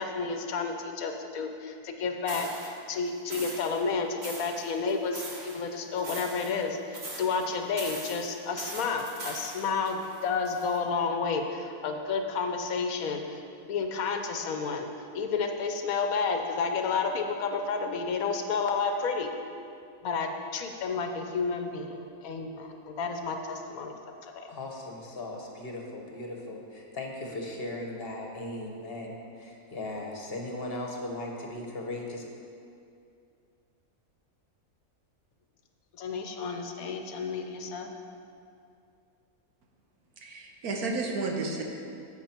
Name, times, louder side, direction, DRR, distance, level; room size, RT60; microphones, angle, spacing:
voice 1, 0.0-14.8 15.1-19.3 20.0-23.9 24.2-24.5 36.0-37.9, left 5 dB, 75° left, 5 dB, 1.2 m, -31 dB
sound 1, 2.3-2.7 3.3-3.8 4.2-5.6 6.0-6.7 6.9-7.4 7.8-10.8, right 2 dB, 45° right, 1.6 m, -41 dB
voice 2, 24.5-32.3, left 2 dB, 45° left, 1 dB, 1.3 m, -38 dB
voice 3, 40.2-41.6, right 3 dB, 85° right, 2 dB, 1.6 m, -32 dB
11.0 x 8.0 x 4.5 m, 2.5 s
omnidirectional pair, 1.5 m